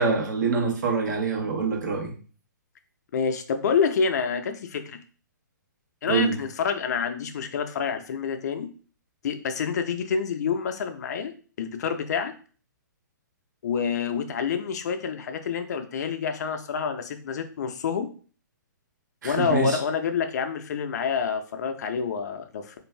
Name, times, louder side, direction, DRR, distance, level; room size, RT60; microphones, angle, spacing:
voice 1, 0.0-2.1 6.1-6.3 19.2-19.8, right 5 dB, 65° right, 1 dB, 1.1 m, -25 dB
voice 2, 3.1-5.0 6.0-8.7 9.2-11.3 11.6-12.3 13.6-18.1 19.2-22.8, left 6 dB, 60° left, 7 dB, 0.5 m, -27 dB
2.6 x 2.4 x 3.2 m, 0.40 s
hypercardioid pair, 140°, 10 cm